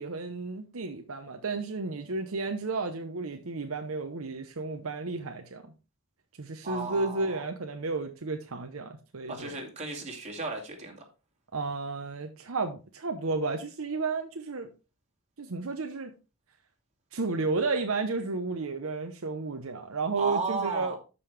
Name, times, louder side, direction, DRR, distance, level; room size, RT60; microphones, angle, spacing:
voice 1, 0.0-5.7 6.4-9.5 11.5-14.7 15.4-16.1 17.1-21.0, right 3 dB, 65° right, 0.8 m, -32 dB
voice 2, 6.6-7.4 9.3-11.0 20.2-21.0, right 3 dB, 30° right, 2.4 m, -34 dB
12.5 x 5.5 x 3.3 m
head